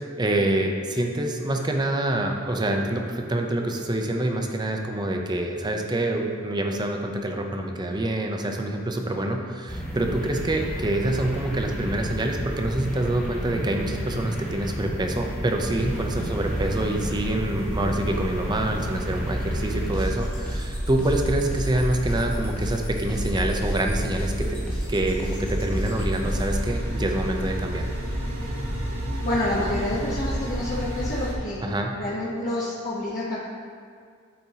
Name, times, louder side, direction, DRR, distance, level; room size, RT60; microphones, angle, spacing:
voice 1, 0.2-24.6 24.9-27.8 31.6-31.9, right 1 dB, 20° right, 3 dB, 0.6 m, -26 dB
sound 1, 9.7-26.7, equal, 10° left, 1.4 m, -31 dB
sound 2, 15.8-31.4, right 1 dB, 70° right, 1.5 m, -32 dB
voice 2, 29.2-31.6 32.0-33.4, left 1 dB, 40° left, -9 dB, 1.0 m, -28 dB
11.5 x 4.4 x 2.8 m, 2.2 s
head